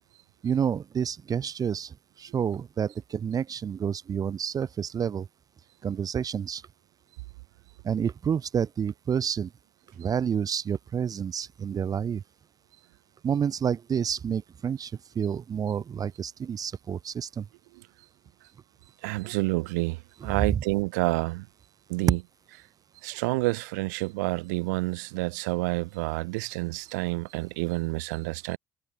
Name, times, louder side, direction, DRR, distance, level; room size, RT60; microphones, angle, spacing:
voice 1, 0.4-5.3 5.8-6.6 7.8-9.5 10.0-12.2 13.2-17.5 20.5-20.6, right 7 dB, 40° right, 1.2 m, -29 dB
voice 2, 19.0-21.5 21.9-22.2 23.0-28.6, right 25 dB, 80° right, 1.0 m, -29 dB
hypercardioid pair, 60°, 9 cm